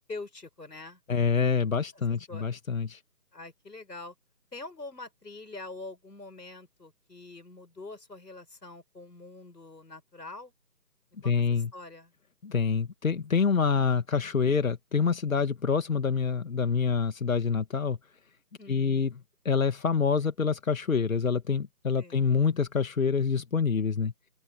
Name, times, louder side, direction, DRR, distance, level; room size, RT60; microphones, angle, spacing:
voice 1, 0.0-1.0 2.3-2.5 3.3-4.1 4.5-10.5 11.2-11.3 11.7-12.1 18.6-19.1 22.0-22.3, left 3 dB, 80° left, 7.9 m, -44 dB
voice 2, 1.1-3.0 11.2-11.7 12.4-18.0 18.7-19.1 19.4-24.1, left 5 dB, 55° left, 2.0 m, -26 dB
open air
figure-of-eight pair, 160°, 49 cm